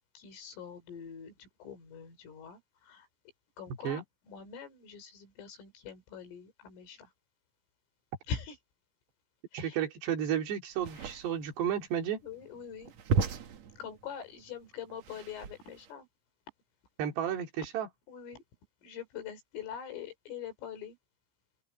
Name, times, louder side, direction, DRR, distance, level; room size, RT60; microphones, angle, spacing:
voice 1, 0.2-3.1 3.6-7.1 8.3-8.6 9.5-9.8 11.0-11.2 12.2-13.2 13.8-16.1 18.1-18.4 18.8-21.0, left 7 dB, 80° left, 7.0 m, -44 dB
voice 2, 9.5-12.2 17.0-17.9, right 9 dB, 60° right, 4.7 m, -32 dB
sound 1, 10.7-15.9, right 5 dB, 90° right, 1.5 m, -35 dB
open air
omnidirectional pair, 5.8 m